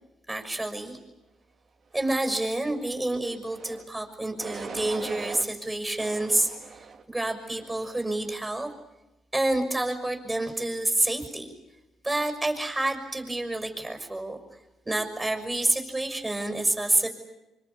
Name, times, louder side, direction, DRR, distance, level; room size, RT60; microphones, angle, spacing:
voice 1, 0.3-1.0 1.9-8.7 9.3-11.5 12.0-17.1, right 1 dB, 15° right, 4 dB, 6.0 m, -28 dB
sound 1, 3.4-3.8 4.4-5.5 6.0-7.0 7.6-8.0, right 5 dB, 55° right, 2.3 m, -40 dB
27.0 x 25.5 x 8.5 m, 1.0 s
cardioid pair, 90°, 0 cm